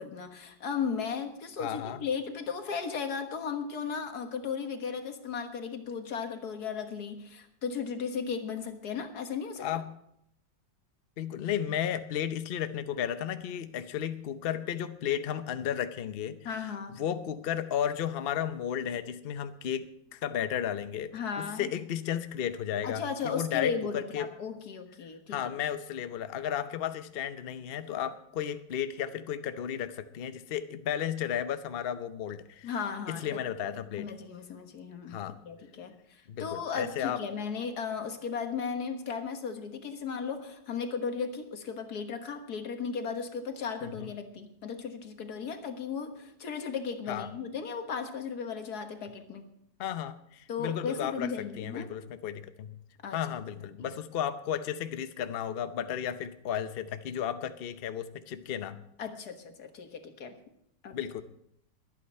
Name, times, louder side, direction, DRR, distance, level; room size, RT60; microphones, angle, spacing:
voice 1, 0.0-9.7 16.5-17.0 21.1-21.7 22.8-25.4 32.6-33.4 34.0-49.5 50.5-52.0 53.0-53.2 53.8-53.9 59.0-60.4 60.8-61.0, left 6 dB, 55° left, 6 dB, 1.8 m, -36 dB
voice 2, 1.6-2.0 9.6-9.9 11.2-16.5 17.0-24.3 25.3-32.7 33.1-34.1 35.1-35.4 36.3-37.2 43.8-44.1 47.1-47.3 49.8-52.8 53.1-58.8 60.9-61.2, left 9 dB, 90° left, 11 dB, 0.5 m, -34 dB
22.5 x 9.1 x 4.3 m, 0.75 s
omnidirectional pair, 2.0 m